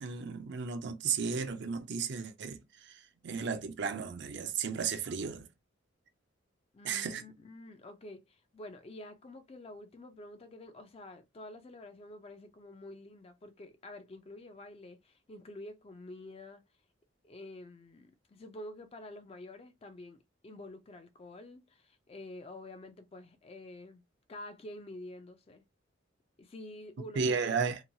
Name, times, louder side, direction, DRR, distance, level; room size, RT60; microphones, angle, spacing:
voice 1, 0.0-5.5 6.8-7.2 27.2-27.8, right 5 dB, 60° right, 0.5 m, -34 dB
voice 2, 6.7-16.6 17.2-24.0 24.3-25.6 26.4-27.6, left 1 dB, 30° left, 0.4 m, -48 dB
2.8 x 2.2 x 2.7 m
head